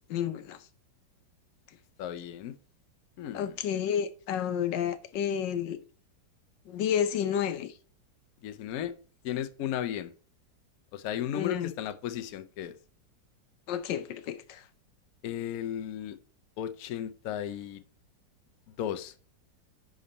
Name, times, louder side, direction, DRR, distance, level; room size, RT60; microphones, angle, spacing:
voice 1, 0.1-0.6 3.3-5.8 6.7-7.7 11.3-11.7 13.7-14.6, left 9 dB, 80° left, 1.4 m, -30 dB
voice 2, 2.0-2.6 3.2-3.5 8.4-8.9 9.2-10.1 10.9-12.8 15.2-16.2 16.6-17.8 18.7-19.1, left 10 dB, 65° left, 1.0 m, -35 dB
10.5 x 3.9 x 4.2 m
omnidirectional pair, 2.0 m